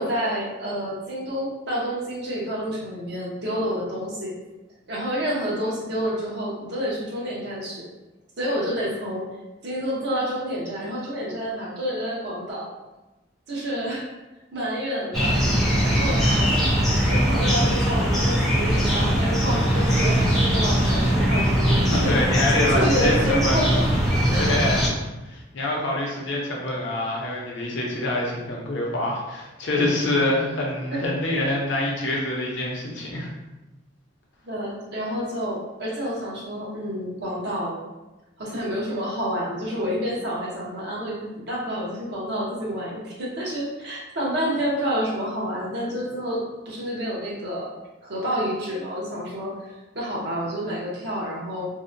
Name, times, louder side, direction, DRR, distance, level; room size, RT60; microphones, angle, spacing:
voice 1, 0.0-4.3 4.9-7.8 8.4-9.3 9.6-12.7 13.5-14.1 14.5-15.4 15.8-16.5 16.9-22.2 22.7-23.9 24.3-24.5 30.8-31.0 34.4-37.8 38.4-47.7 48.0-51.7, equal, 60° right, -4 dB, 0.7 m, -28 dB
sound 1, 15.1-24.9, equal, ahead, 0.5 m, -21 dB
voice 2, 21.9-23.6 24.4-24.9 25.2-33.3, left 1 dB, 70° left, -2 dB, 0.6 m, -25 dB
2.6 x 2.1 x 2.5 m, 1.1 s
head